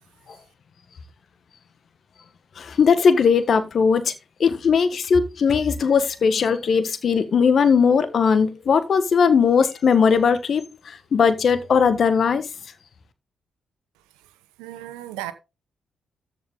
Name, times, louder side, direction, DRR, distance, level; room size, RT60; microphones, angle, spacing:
voice 1, 2.6-4.1 4.4-12.5, left 6 dB, 60° left, 1.4 m, -19 dB
voice 2, 14.6-15.3, right 14 dB, 85° right, 0.9 m, -34 dB
14.0 x 5.3 x 3.8 m
hypercardioid pair, 45°, 0 cm